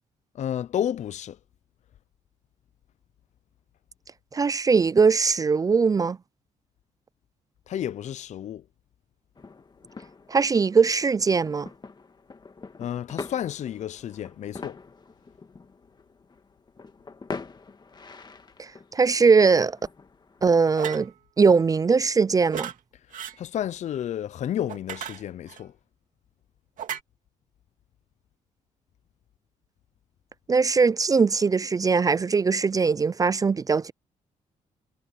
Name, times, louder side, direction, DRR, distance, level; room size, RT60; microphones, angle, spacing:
voice 1, 0.3-1.4 7.7-8.6 12.8-14.8 23.4-25.7, left 10 dB, 55° left, 0.5 m, -31 dB
voice 2, 4.3-6.2 10.3-11.7 18.6-19.8 20.4-21.1 21.4-22.7 30.5-33.9, right 5 dB, 25° right, 0.3 m, -21 dB
sound 1, 9.4-20.5, left 4 dB, 30° left, 2.0 m, -44 dB
Fighting with shovels revisited, 20.8-21.1 22.5-22.7 23.1-23.4 24.7-25.6 26.8-27.0, right 9 dB, 70° right, 2.7 m, -34 dB
cardioid pair, 90°, 14 cm